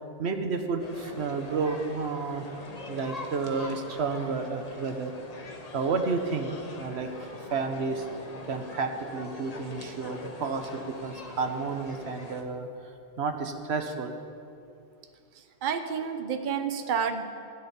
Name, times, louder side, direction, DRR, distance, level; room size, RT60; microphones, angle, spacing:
voice 1, 0.2-2.5 2.9-5.1 5.7-6.5 6.8-8.0 8.5-12.7 13.2-14.2, right 4 dB, 80° right, 6 dB, 1.3 m, -31 dB
sound 1, 0.8-12.4, left 2 dB, 40° left, 1.2 m, -42 dB
voice 2, 15.3-17.3, right 7 dB, 55° right, 7 dB, 0.9 m, -30 dB
16.5 x 6.4 x 9.9 m, 2.5 s
omnidirectional pair, 1.1 m